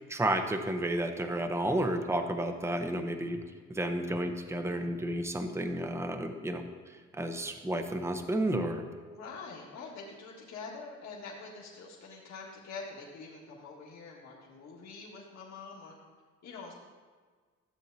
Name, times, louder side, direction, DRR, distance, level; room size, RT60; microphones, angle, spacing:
voice 1, 0.1-3.4 3.7-6.6 7.2-8.9, right 1 dB, 10° right, 6 dB, 0.7 m, -31 dB
voice 2, 9.1-15.9 16.4-16.7, left 4 dB, 65° left, -5 dB, 1.8 m, -45 dB
13.5 x 7.4 x 2.7 m, 1.5 s
cardioid pair, 90°, 30 cm